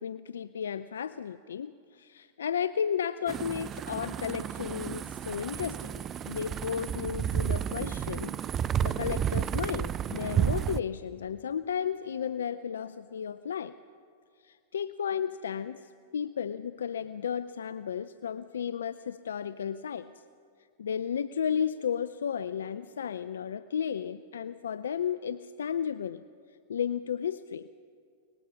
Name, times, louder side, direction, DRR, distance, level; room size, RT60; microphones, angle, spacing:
voice 1, 0.0-8.4 8.8-13.7 14.4-20.1 20.8-26.2 26.7-27.7, left 8 dB, 80° left, 14 dB, 0.5 m, -33 dB
sound 1, 3.3-10.8, right 9 dB, 30° right, 0.5 m, -32 dB
23.0 x 20.0 x 5.7 m, 2.3 s
hypercardioid pair, 105°, 0 cm